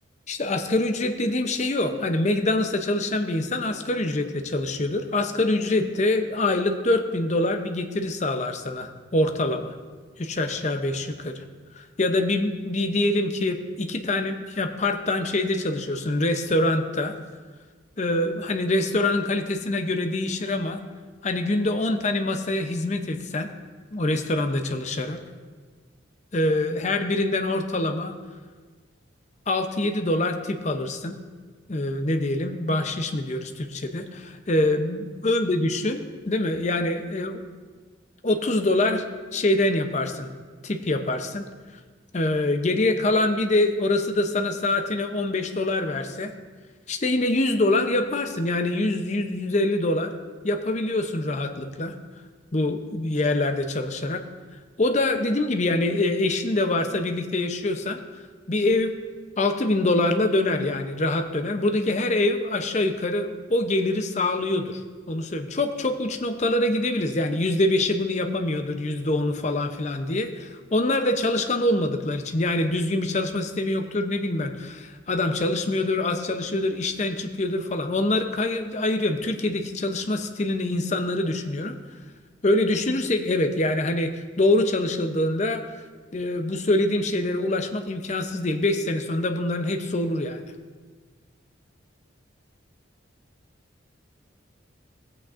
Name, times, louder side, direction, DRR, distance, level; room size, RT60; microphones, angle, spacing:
voice 1, 0.3-9.7 10.2-11.4 11.8-17.1 18.0-20.8 21.2-23.5 23.9-25.2 26.3-28.1 29.5-31.2 31.7-37.4 38.2-39.1 39.3-40.3 40.6-41.5 42.1-46.3 46.9-50.1 50.4-51.9 52.5-54.2 54.8-58.0 58.5-58.9 59.4-64.8 65.1-81.8 82.4-84.1 84.4-85.6 86.1-90.5, left 2 dB, 35° left, 6 dB, 0.6 m, -25 dB
17.0 x 8.5 x 2.5 m, 1.5 s
head